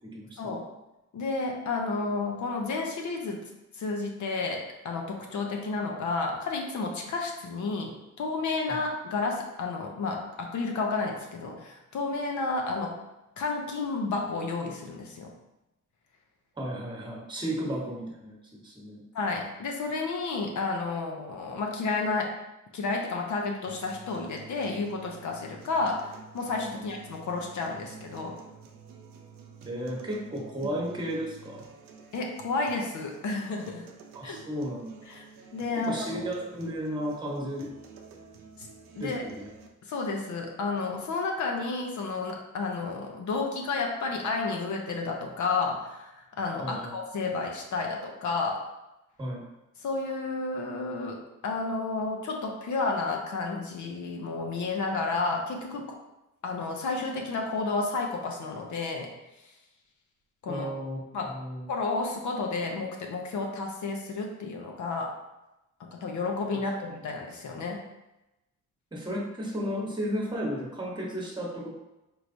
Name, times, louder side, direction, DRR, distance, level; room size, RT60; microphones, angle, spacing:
voice 1, 0.0-0.6 8.7-8.8 16.6-18.4 18.6-19.0 26.7-26.8 29.7-31.6 34.1-35.2 35.8-37.7 39.0-39.5 46.6-46.9 49.2-49.4 60.5-61.0 61.3-61.6 66.5-66.6 68.9-71.7, equal, 15° right, -2 dB, 1.2 m, -34 dB
voice 2, 1.1-13.0 13.4-15.3 19.1-22.3 22.7-28.4 32.1-33.8 34.2-34.4 35.1-35.2 35.5-36.2 38.6-38.7 39.0-39.2 39.8-48.6 49.8-55.9 56.4-59.1 59.4-59.5 60.4-60.7 61.1-61.3 61.7-65.1 65.8-67.8, left 3 dB, 60° left, 1 dB, 0.8 m, -31 dB
sound 1, 23.7-39.7, right 6 dB, 85° right, 0.6 m, -50 dB
4.7 x 3.2 x 2.6 m, 0.96 s
cardioid pair, 95°, 33 cm